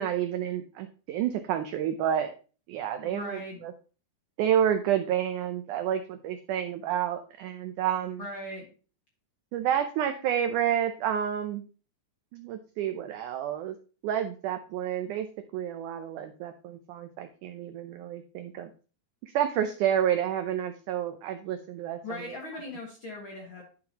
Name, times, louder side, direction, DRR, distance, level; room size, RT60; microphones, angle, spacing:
voice 1, 0.0-2.3 2.7-3.7 4.4-8.3 9.5-11.6 12.3-13.8 14.0-15.3 15.5-18.7 19.2-22.4, right 10 dB, 85° right, 8 dB, 1.7 m, -29 dB
voice 2, 3.0-3.6 8.2-8.7 22.0-23.6, left 2 dB, 50° left, -1 dB, 1.6 m, -39 dB
11.5 x 5.8 x 2.8 m, 0.37 s
omnidirectional pair, 4.3 m